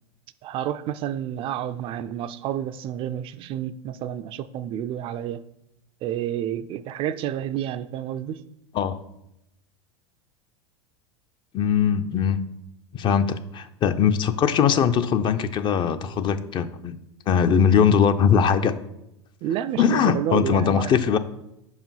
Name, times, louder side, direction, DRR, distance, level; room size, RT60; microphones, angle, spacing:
voice 1, 0.4-5.4 6.0-8.4 19.4-20.9, right 11 dB, 40° right, 12 dB, 0.3 m, -29 dB
voice 2, 11.5-12.4 12.9-17.0 17.3-18.7 19.8-21.2, left 7 dB, 35° left, 10 dB, 0.5 m, -21 dB
5.1 x 4.9 x 5.4 m, 0.85 s
hypercardioid pair, 90°, 15 cm